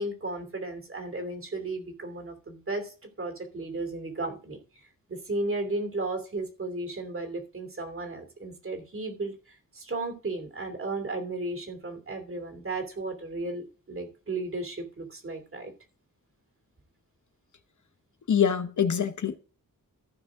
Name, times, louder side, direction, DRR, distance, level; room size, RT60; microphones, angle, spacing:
voice 1, 0.0-4.8 5.1-15.7, right 2 dB, 40° right, 2.8 m, -34 dB
voice 2, 18.3-19.4, left 8 dB, 60° left, 1.0 m, -24 dB
14.5 x 6.2 x 3.7 m
wide cardioid pair, 140°, 34 cm